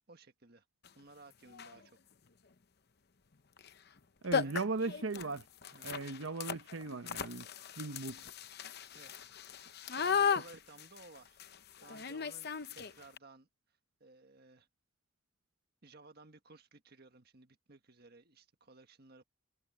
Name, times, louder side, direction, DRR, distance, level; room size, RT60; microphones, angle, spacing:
voice 1, 0.1-0.6 0.9-2.0 4.4-4.6 5.7-5.9 8.9-9.1 9.9-11.4 11.8-13.5 14.0-14.7 15.8-19.2, right 3 dB, 50° right, 1.7 m, -57 dB
sound 1, 0.8-0.9 1.5-1.9 3.6-3.7 4.0-4.1 4.3-13.2, left 6 dB, 50° left, 0.8 m, -37 dB
voice 2, 4.2-5.4 5.8-7.5 7.8-8.2, right 3 dB, 75° right, 0.9 m, -37 dB
head